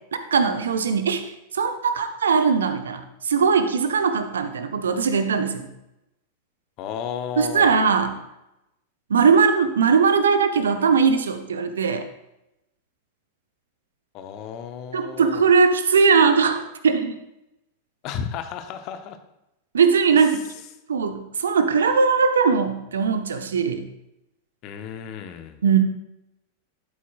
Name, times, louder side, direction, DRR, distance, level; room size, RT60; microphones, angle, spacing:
voice 1, 0.3-1.2 1.5-5.7 7.4-8.1 9.1-12.1 14.9-17.2 19.7-20.4 20.9-23.8 25.6-25.8, right 5 dB, 65° right, 9 dB, 0.8 m, -20 dB
voice 2, 6.8-7.8 14.1-15.5 18.0-19.2 24.6-25.6, left 8 dB, 40° left, 8 dB, 0.8 m, -33 dB
11.5 x 8.4 x 2.4 m, 0.89 s
figure-of-eight pair, 90°, 0 cm